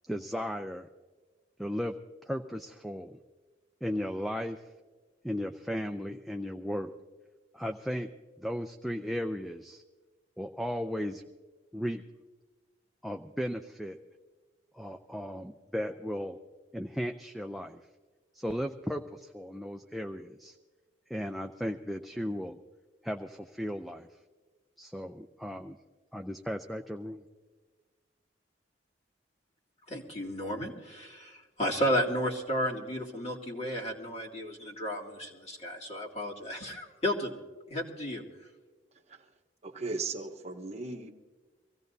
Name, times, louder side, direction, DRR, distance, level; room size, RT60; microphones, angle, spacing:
voice 1, 0.1-0.9 1.6-2.0 2.3-3.2 3.8-4.6 5.2-6.9 7.5-8.1 8.4-9.8 10.4-11.2 11.7-12.0 13.0-14.0 14.7-16.4 16.7-17.8 18.3-20.6 21.1-22.6 23.0-24.1 24.8-25.8 26.1-27.2, equal, ahead, 4 dB, 0.4 m, -35 dB
voice 2, 29.9-37.4 37.7-38.2, equal, 35° left, -2 dB, 2.3 m, -33 dB
voice 3, 39.6-41.1, right 3 dB, 35° right, 4 dB, 1.0 m, -37 dB
24.5 x 16.5 x 2.7 m, 1.3 s
head